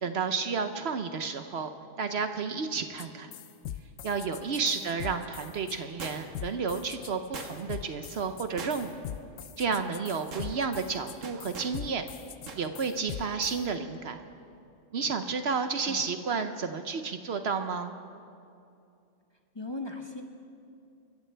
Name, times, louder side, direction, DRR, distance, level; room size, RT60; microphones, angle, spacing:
voice 1, 0.0-1.7 2.0-3.3 4.0-9.0 9.6-12.0 12.5-14.2 14.9-17.9, right 5 dB, 60° right, 8 dB, 0.9 m, -31 dB
sound 1, 3.0-3.1 3.3-13.6, left 11 dB, 70° left, 0.9 m, -41 dB
sound 2, 6.0-6.5 7.3-7.8 8.6-9.1 9.4-9.6 10.1-10.5 11.2-11.8 12.5-12.7 13.0-13.1, right 4 dB, 85° right, 1.6 m, -41 dB
voice 2, 19.5-20.2, left 2 dB, 25° left, 3 dB, 0.9 m, -38 dB
27.0 x 14.5 x 3.4 m, 2.5 s
omnidirectional pair, 1.3 m